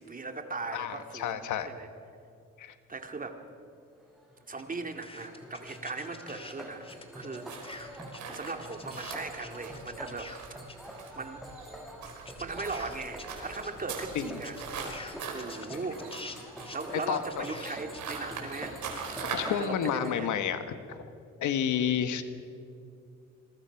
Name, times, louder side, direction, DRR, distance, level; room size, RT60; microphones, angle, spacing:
voice 1, 0.0-1.9 2.9-3.4 4.5-6.8 7.1-7.5 8.3-10.3 10.8-11.4 12.4-14.6 15.2-18.8 19.6-20.3 21.4-21.5, right 3 dB, 30° right, 6 dB, 2.3 m, -39 dB
voice 2, 0.7-1.7 2.6-2.7 14.1-14.3 17.1-17.4 19.2-20.6 21.4-22.2, left 9 dB, 75° left, 10 dB, 1.6 m, -30 dB
sound 1, 4.0-20.1, equal, ahead, 6.4 m, -46 dB
sound 2, 4.6-6.5 6.8-11.2 11.5-11.6 12.1-13.7 14.0-14.1 14.3-18.1, left 2 dB, 20° left, 2.6 m, -47 dB
sound 3, 7.4-19.6, right 5 dB, 70° right, 4.9 m, -42 dB
26.5 x 22.0 x 6.0 m, 2.5 s
cardioid pair, 90°, 30 cm